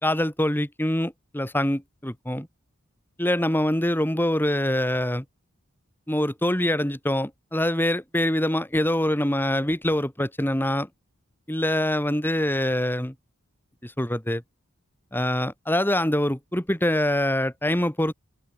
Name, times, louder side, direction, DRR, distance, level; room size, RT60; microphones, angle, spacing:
voice 1, 0.0-2.5 3.2-5.2 6.1-10.9 11.5-13.1 13.8-14.4 15.1-18.1, left 1 dB, 10° left, 2.8 m, -24 dB
open air
head